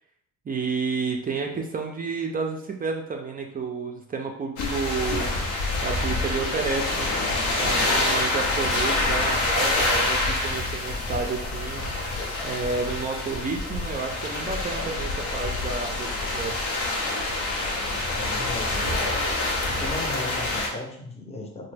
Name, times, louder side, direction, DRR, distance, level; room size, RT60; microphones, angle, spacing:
voice 1, 0.5-5.4 5.8-7.1 7.6-11.9 12.4-16.6, right 4 dB, 30° right, 2 dB, 0.4 m, -30 dB
sound 1, 4.6-20.7, left 2 dB, 85° left, 0.7 m, -26 dB
voice 2, 18.2-19.0 19.7-21.7, left 2 dB, 20° left, 1 dB, 0.7 m, -36 dB
2.9 x 2.2 x 3.3 m, 0.71 s
cardioid pair, 90°, 30 cm